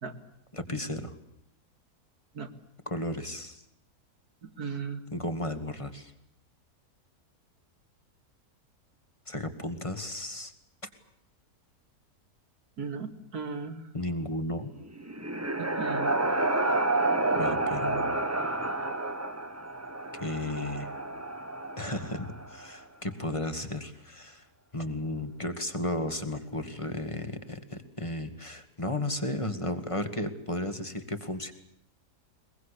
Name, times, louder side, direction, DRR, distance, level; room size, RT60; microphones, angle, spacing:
voice 1, 0.5-1.2 2.9-3.6 5.1-6.1 9.3-10.5 13.9-14.7 17.3-18.2 20.1-20.9 21.8-24.5 24.7-31.5, left 1 dB, 20° left, 9 dB, 2.1 m, -34 dB
voice 2, 4.4-5.0 12.8-13.9 15.6-16.2, right 5 dB, 70° right, 6 dB, 2.7 m, -37 dB
noise horror ghost, 14.8-22.6, right 2 dB, 10° right, 1.4 m, -30 dB
22.5 x 22.0 x 8.4 m, 0.78 s
omnidirectional pair, 1.7 m